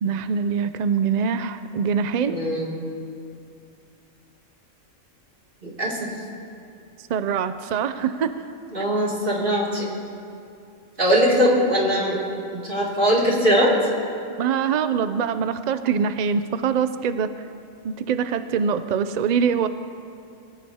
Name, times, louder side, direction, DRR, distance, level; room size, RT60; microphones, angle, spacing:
voice 1, 0.0-2.4 7.1-8.3 14.4-17.3 17.8-19.7, right 6 dB, 70° right, 11 dB, 0.4 m, -23 dB
voice 2, 2.3-2.7 5.6-6.1 8.7-9.9 11.0-12.2 12.5-13.7, equal, 40° right, -4 dB, 3.0 m, -21 dB
21.5 x 16.5 x 2.8 m, 2.6 s
omnidirectional pair, 1.3 m